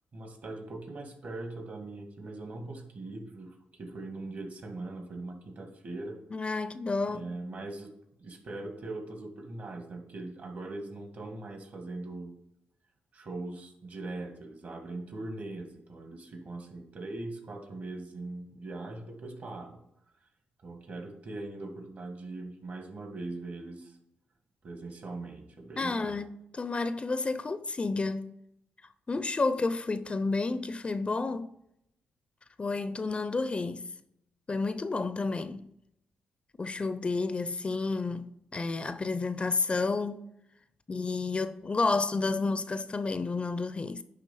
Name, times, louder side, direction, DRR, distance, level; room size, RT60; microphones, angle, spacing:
voice 1, 0.1-6.2 7.1-7.9 8.2-12.4 13.1-19.8 20.6-24.0 24.6-26.2, right 2 dB, 55° right, 2.0 m, -41 dB
voice 2, 6.3-7.2 25.8-28.3 29.1-31.5 32.6-33.9 34.5-35.7 36.6-40.2 40.9-44.0, left 3 dB, 30° left, 0.5 m, -30 dB
10.0 x 3.4 x 5.5 m
supercardioid pair, 65°, 4 cm